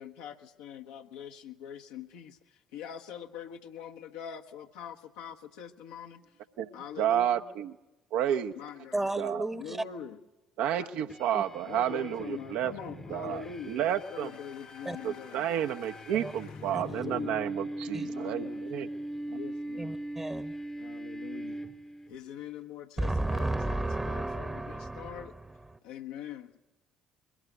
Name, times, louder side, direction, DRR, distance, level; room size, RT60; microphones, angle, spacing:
voice 1, 0.0-6.3 6.7-7.5 8.5-9.0 9.5-10.2 10.8-10.9 11.6-17.4 18.0-18.8 19.3-20.0 20.8-21.6 22.1-25.3 25.8-26.6, left 8 dB, 70° left, 3 dB, 1.1 m, -44 dB
voice 2, 7.0-7.7 8.1-8.5 9.2-9.4 10.6-12.7 13.1-14.3 15.0-18.9, right 10 dB, 65° right, 6 dB, 1.0 m, -31 dB
voice 3, 8.9-9.8 11.3-11.4 14.8-15.0 16.1-16.3 16.7-16.8 17.9-18.1 19.8-20.6 23.0-25.8, right 2 dB, 15° right, 12 dB, 1.1 m, -33 dB
sound 1, 11.1-22.2, right 1 dB, 20° left, 1.0 m, -41 dB
22.5 x 17.5 x 9.2 m, 0.98 s
figure-of-eight pair, 50°, 2 cm